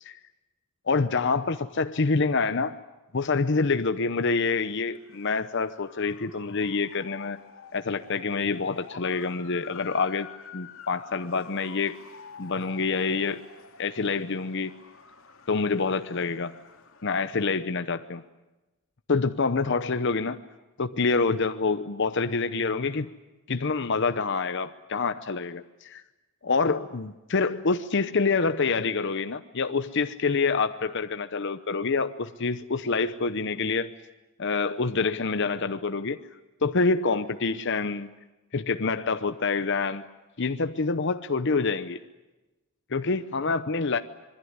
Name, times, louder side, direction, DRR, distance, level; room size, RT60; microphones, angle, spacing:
voice 1, 0.9-2.8 3.1-7.4 7.7-10.3 10.5-12.0 12.4-13.4 13.8-14.7 15.5-16.5 17.0-18.2 19.1-20.4 20.8-23.1 23.5-26.0 26.4-33.9 34.4-36.2 36.6-38.1 38.5-40.0 40.4-42.0 42.9-44.0, left 4 dB, 60° left, 9 dB, 0.8 m, -26 dB
Motor vehicle (road) / Siren, 4.8-17.5, left 5 dB, 90° left, 2.6 m, -49 dB
26.0 x 22.5 x 9.6 m, 1.1 s
head